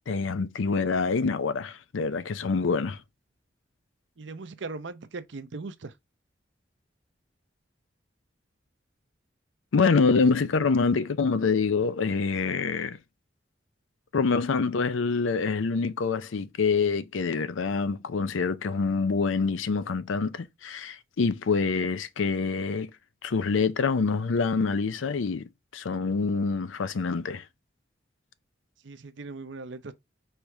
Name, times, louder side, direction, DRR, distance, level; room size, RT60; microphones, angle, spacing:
voice 1, 0.1-3.0 9.7-13.0 14.1-22.9 23.2-27.4, left 4 dB, 85° left, 0.5 m, -26 dB
voice 2, 4.2-5.9 28.8-29.9, right 3 dB, 70° right, 0.6 m, -39 dB
4.5 x 3.4 x 3.5 m
head